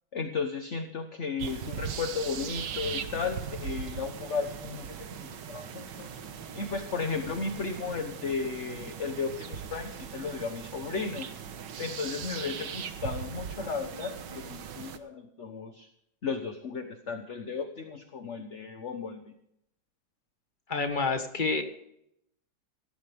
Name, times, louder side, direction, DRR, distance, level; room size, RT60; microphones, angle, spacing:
voice 1, 0.1-6.1 6.5-11.3 11.8-15.9 16.2-19.2, left 5 dB, 45° left, 6 dB, 1.4 m, -34 dB
sound 1, 1.4-15.0, right 7 dB, 80° right, 1.8 m, -39 dB
voice 2, 20.7-21.6, left 4 dB, 30° left, 6 dB, 1.8 m, -29 dB
17.5 x 14.5 x 3.6 m, 0.75 s
omnidirectional pair, 1.9 m